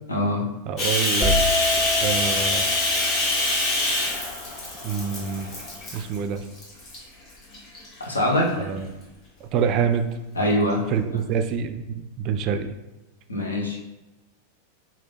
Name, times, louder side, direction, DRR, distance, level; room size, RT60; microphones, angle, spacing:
voice 1, 0.1-0.5 8.0-8.5 10.4-10.8 13.3-13.8, left 1 dB, 75° left, -1 dB, 1.0 m, -23 dB
voice 2, 0.7-1.3 2.0-2.7 4.8-5.5 5.9-6.5 8.6-8.9 9.4-10.1 10.9-12.7, right 7 dB, 40° right, 8 dB, 0.4 m, -26 dB
Bathtub (filling or washing), 0.8-6.2 6.6-7.0 7.5-8.4, left 2 dB, 35° left, 1.4 m, -25 dB
sound 1, 1.2-5.0, left 2 dB, 20° left, 0.5 m, -28 dB
4.9 x 2.8 x 3.3 m, 1.1 s
figure-of-eight pair, 90°, 0 cm